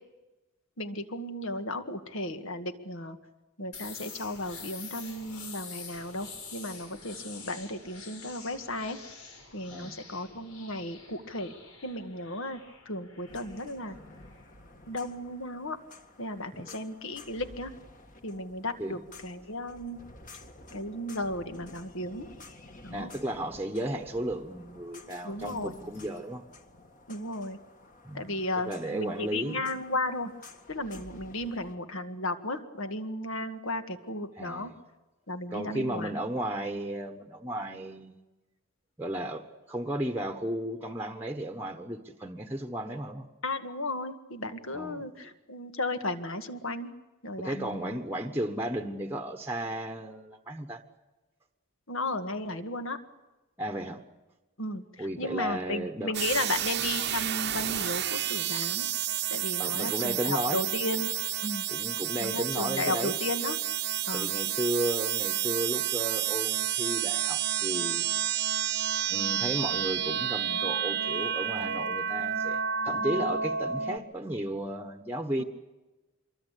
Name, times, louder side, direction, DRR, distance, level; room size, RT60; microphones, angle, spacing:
voice 1, 0.8-3.2 3.6-9.0 9.5-11.5 11.8-14.0 14.9-15.8 16.2-17.7 18.2-20.0 20.7-22.3 22.8-23.1 25.2-25.8 27.1-27.6 28.1-30.3 30.7-34.7 35.3-36.2 43.4-46.9 47.2-48.0 51.9-53.0 54.6-58.9 59.3-61.1 61.4-61.7 62.2-63.6 64.1-64.3 75.4-75.5, left 1 dB, 65° left, 8 dB, 1.9 m, -34 dB
sound 1, 3.7-15.4, left 5 dB, 90° left, 6.2 m, -47 dB
sound 2, 13.3-31.8, left 2 dB, 35° left, 1.9 m, -52 dB
voice 2, 22.9-26.4 28.0-28.4 28.7-29.6 34.4-34.7 35.5-38.2 39.0-43.3 44.7-45.0 47.4-50.8 53.6-54.0 55.0-56.1 59.6-60.6 61.7-63.1 64.1-68.1 69.1-75.4, right 1 dB, 10° right, 5 dB, 1.2 m, -34 dB
sound 3, 56.1-74.0, right 10 dB, 50° right, 0.9 m, -30 dB
25.5 x 23.0 x 8.4 m, 1.1 s
head